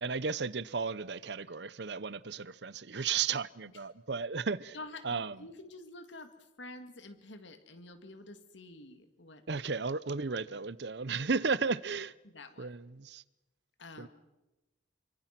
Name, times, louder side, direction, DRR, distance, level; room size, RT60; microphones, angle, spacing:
voice 1, 0.0-4.8 5.0-5.5 9.5-12.1 12.6-13.2 14.0-14.1, right 5 dB, 65° right, 0.8 m, -34 dB
voice 2, 4.7-6.3 6.6-9.6 12.2-12.7 13.8-14.1, left 2 dB, 75° left, 2.3 m, -48 dB
29.0 x 25.0 x 6.0 m
head